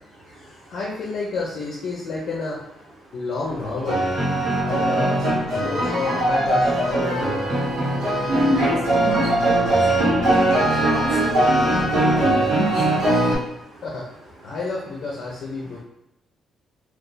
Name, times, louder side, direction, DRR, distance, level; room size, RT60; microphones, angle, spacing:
voice 1, 0.3-2.6 3.1-4.0 4.6-5.3 5.6-7.4 13.8-14.1 14.4-15.8, left 3 dB, 60° left, -3 dB, 0.6 m, -30 dB
sound 1, 3.4-13.3, right 1 dB, 85° right, 1.1 m, -21 dB
voice 2, 8.3-9.2 9.6-11.7 12.2-12.8, right 1 dB, 55° right, -6 dB, 1.4 m, -27 dB
2.6 x 2.4 x 3.8 m, 0.81 s
cardioid pair, 140°, 0 cm